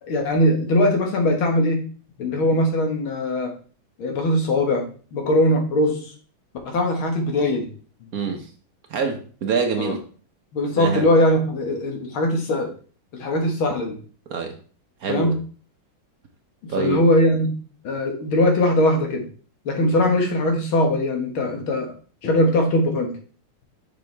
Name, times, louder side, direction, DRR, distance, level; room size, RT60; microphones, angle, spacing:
voice 1, 0.0-1.8 2.2-3.5 4.0-4.8 5.1-6.1 6.7-7.7 8.0-8.1 9.8-9.9 10.5-12.7 13.1-14.0 15.1-15.3 16.6-17.5 17.8-19.2 19.7-21.9 22.2-23.1, left 1 dB, 90° left, 3 dB, 2.4 m, -20 dB
voice 2, 8.1-8.5 8.9-10.0 10.7-11.1 14.3-14.6 15.0-15.4 16.7-17.0, right 4 dB, 55° right, 5 dB, 1.1 m, -25 dB
7.2 x 5.7 x 3.4 m, 0.41 s
omnidirectional pair, 2.2 m